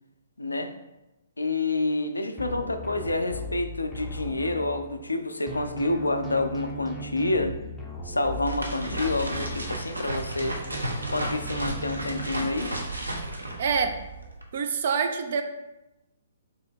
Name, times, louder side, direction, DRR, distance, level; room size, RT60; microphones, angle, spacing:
voice 1, 0.4-0.7 1.4-7.6 8.0-10.6 11.1-12.7, left 2 dB, 80° left, 6 dB, 0.4 m, -28 dB
sound 1, 2.4-5.2 5.5-10.1 10.4-12.3, equal, 10° left, 0.5 m, -38 dB
sound 2, 8.1-14.4, right 1 dB, 85° right, 0.7 m, -33 dB
voice 2, 13.6-14.0 14.5-15.4, right 6 dB, 50° right, 6 dB, 0.4 m, -26 dB
3.6 x 2.7 x 4.4 m, 0.96 s
figure-of-eight pair, 125°, 0 cm